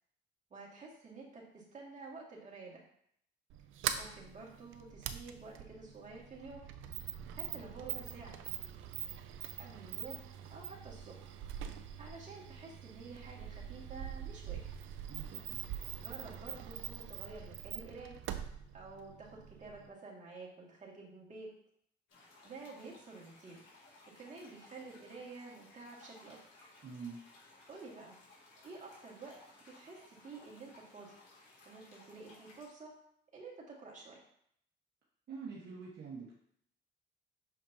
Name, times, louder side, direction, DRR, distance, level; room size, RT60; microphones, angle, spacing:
voice 1, 0.5-2.8 3.9-6.6 7.3-8.4 9.6-10.2 10.5-11.3 12.0-14.6 16.0-18.1 18.7-21.5 22.4-23.6 24.2-26.7 27.7-28.2 28.6-29.4 29.8-31.2 31.7-32.9 33.3-34.2, right 3 dB, 35° right, -4 dB, 2.2 m, -50 dB
Sliding door, 3.5-19.9, right 10 dB, 90° right, 0.5 m, -44 dB
voice 2, 15.1-15.7 26.8-27.2 35.3-36.3, right 5 dB, 55° right, -5 dB, 1.4 m, -46 dB
sound 1, 22.1-32.7, left 2 dB, 80° left, 2.5 m, -60 dB
6.8 x 5.0 x 2.8 m, 0.68 s
cardioid pair, 90°, 20 cm